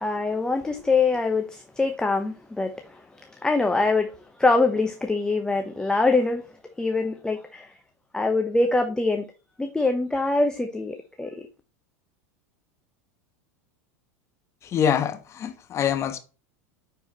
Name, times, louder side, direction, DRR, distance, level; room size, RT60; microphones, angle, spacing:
voice 1, 0.0-2.7 3.4-4.1 4.4-6.4 6.8-7.7 8.1-9.2 9.6-11.3, left 3 dB, 10° left, 0.9 m, -23 dB
voice 2, 14.6-16.2, left 8 dB, 35° left, 1.3 m, -25 dB
9.7 x 4.7 x 2.9 m
hypercardioid pair, 90°, 8 cm